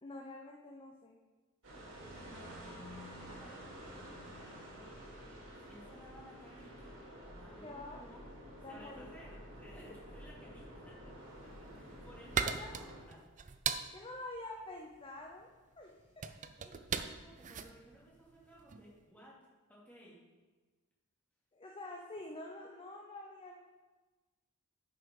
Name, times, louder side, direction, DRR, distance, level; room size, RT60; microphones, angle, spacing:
voice 1, 0.0-1.2 7.6-8.0 8.6-9.1 12.4-12.7 13.9-15.5 15.8-16.2 21.5-23.6, left 2 dB, 25° left, 0 dB, 0.7 m, -47 dB
sound 1, 1.6-13.0, equal, 60° right, 2.7 m, -50 dB
voice 2, 1.7-5.0 5.6-8.2 8.7-11.1 11.4-13.3 16.6-19.4 19.7-20.2, equal, 10° left, -6 dB, 2.6 m, -58 dB
sound 2, 11.5-18.9, right 6 dB, 35° right, 0.5 m, -40 dB
9.4 x 5.8 x 5.4 m, 1.3 s
head